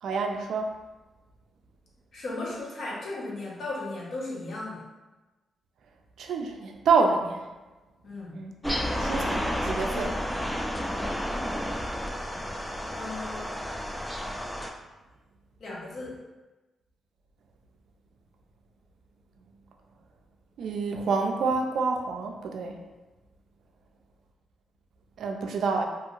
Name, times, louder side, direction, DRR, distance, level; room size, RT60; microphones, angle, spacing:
voice 1, 0.0-0.7 6.2-7.4 8.3-8.5 9.0-10.1 20.6-22.8 25.2-25.8, right 4 dB, 80° right, 3 dB, 0.3 m, -27 dB
voice 2, 2.1-4.8 8.0-8.4 9.9-10.2 12.9-13.7 15.6-16.2, left 2 dB, 65° left, -4 dB, 0.8 m, -36 dB
sound 1, 8.6-14.7, equal, 5° left, 0.3 m, -31 dB
2.5 x 2.4 x 3.0 m, 1.1 s
cardioid pair, 85°, 0 cm